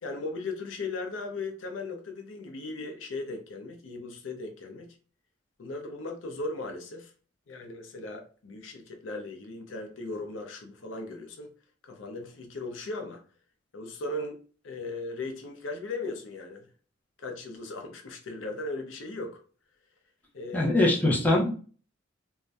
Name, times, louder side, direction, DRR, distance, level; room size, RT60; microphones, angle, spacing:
voice 1, 0.0-5.0 5.6-7.1 7.5-11.5 11.8-13.2 13.7-14.4 14.6-16.7 17.2-19.4 20.3-20.7, left 2 dB, 75° left, 0.5 m, -37 dB
voice 2, 20.5-21.5, left 1 dB, 10° left, 0.6 m, -22 dB
2.5 x 2.1 x 3.3 m
head